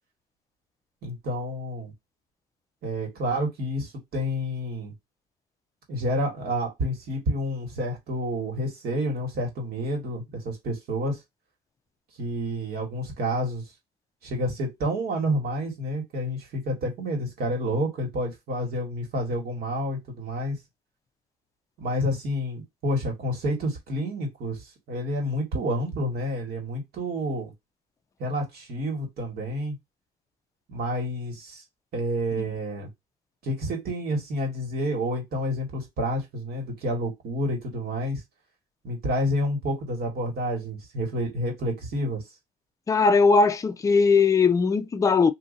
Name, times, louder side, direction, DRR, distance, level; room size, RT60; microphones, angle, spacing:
voice 1, 1.0-1.9 2.8-4.9 5.9-11.2 12.2-13.6 14.2-20.6 21.8-27.5 28.2-29.8 30.7-31.6 31.9-32.9 33.4-38.2 38.8-42.2, equal, 65° right, 1.8 m, -29 dB
voice 2, 42.9-45.3, left 4 dB, 20° left, 0.4 m, -19 dB
2.7 x 2.7 x 3.9 m
cardioid pair, 110°, 17 cm